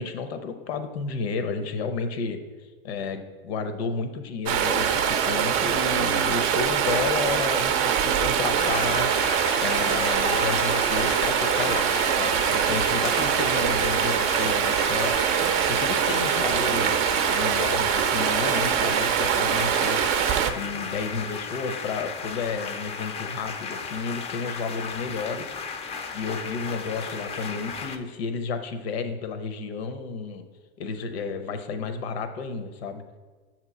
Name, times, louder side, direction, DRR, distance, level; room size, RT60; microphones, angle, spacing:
voice 1, 0.0-2.4 2.8-9.2 9.6-15.3 15.7-20.1 20.5-25.5 26.1-30.4 30.8-33.0, left 5 dB, 85° left, 8 dB, 0.7 m, -32 dB
Stream, 4.5-20.5, right 8 dB, 45° right, 0.5 m, -23 dB
sound 1, 8.6-28.0, left 5 dB, 20° left, 0.4 m, -34 dB
7.4 x 2.9 x 6.0 m, 1.4 s
supercardioid pair, 125°, 31 cm